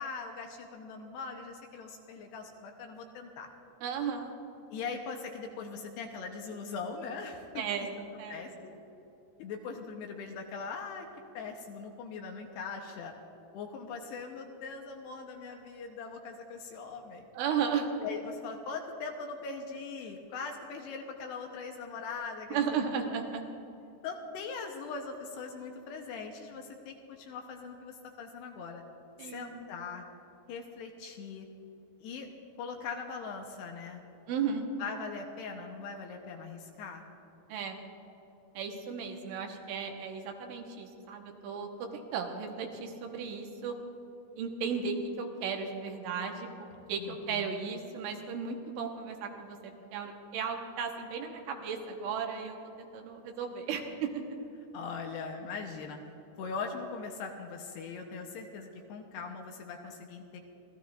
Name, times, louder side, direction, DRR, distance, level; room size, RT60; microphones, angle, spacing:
voice 1, 0.0-3.5 4.7-7.6 8.3-8.7 9.4-11.1 11.3-13.1 13.5-17.3 18.0-22.6 24.0-28.8 29.2-30.1 30.5-31.5 32.0-32.3 32.6-34.0 34.8-37.0 47.0-47.5 54.7-56.0 56.4-60.4, left 5 dB, 75° left, 2 dB, 2.7 m, -41 dB
voice 2, 3.8-4.3 7.6-8.7 17.4-17.9 22.5-23.4 29.2-29.6 34.3-34.7 37.5-37.8 38.6-43.8 44.4-46.5 46.9-54.2, right 6 dB, 90° right, 3 dB, 3.6 m, -35 dB
30.0 x 14.5 x 2.5 m, 3.0 s
omnidirectional pair, 5.4 m